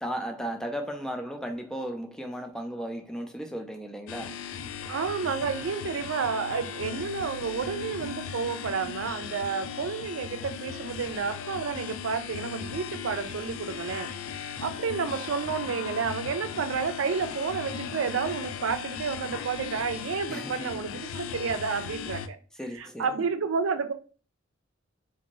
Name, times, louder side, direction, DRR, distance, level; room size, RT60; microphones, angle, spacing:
voice 1, 0.0-4.4 20.3-21.0 22.6-23.1, equal, 5° left, 0.4 m, -35 dB
sound 1, 4.1-22.3, left 7 dB, 85° left, 0.3 m, -37 dB
voice 2, 4.9-22.4 22.8-23.9, right 5 dB, 85° right, 0.4 m, -30 dB
2.6 x 2.6 x 3.0 m
head